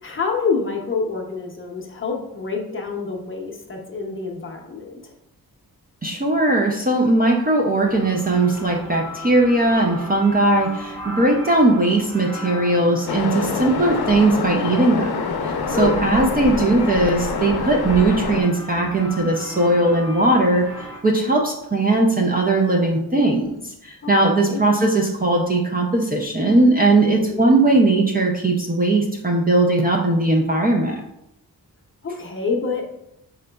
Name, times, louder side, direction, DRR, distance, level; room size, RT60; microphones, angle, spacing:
voice 1, 0.0-5.0 15.7-15.9 24.0-24.6 27.0-27.3 32.0-33.0, left 4 dB, 35° left, 0 dB, 0.6 m, -27 dB
voice 2, 6.0-15.1 15.7-20.7 21.0-23.5 23.8-31.0, right 2 dB, 25° right, 0 dB, 0.4 m, -19 dB
sound 1, 7.8-21.0, equal, 55° right, 1.6 m, -37 dB
Waves surf, 13.1-18.4, left 5 dB, 75° left, 0.6 m, -26 dB
5.1 x 3.8 x 2.2 m, 0.81 s
wide cardioid pair, 175°, 38 cm